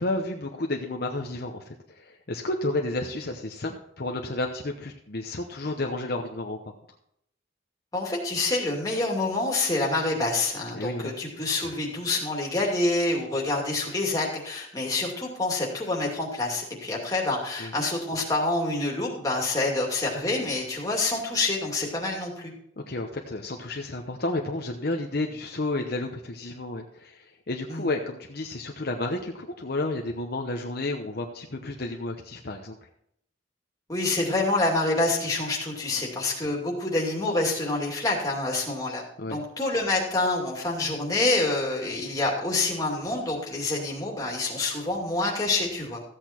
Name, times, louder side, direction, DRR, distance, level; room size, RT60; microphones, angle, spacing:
voice 1, 0.0-6.6 10.7-11.1 17.6-17.7 22.8-32.8 35.9-36.0 39.2-39.4, left 2 dB, 50° left, 3 dB, 0.9 m, -31 dB
voice 2, 7.9-22.5 27.7-27.9 33.9-39.0 39.3-46.0, left 2 dB, 15° left, -1 dB, 2.4 m, -27 dB
14.5 x 8.3 x 4.4 m, 0.73 s
head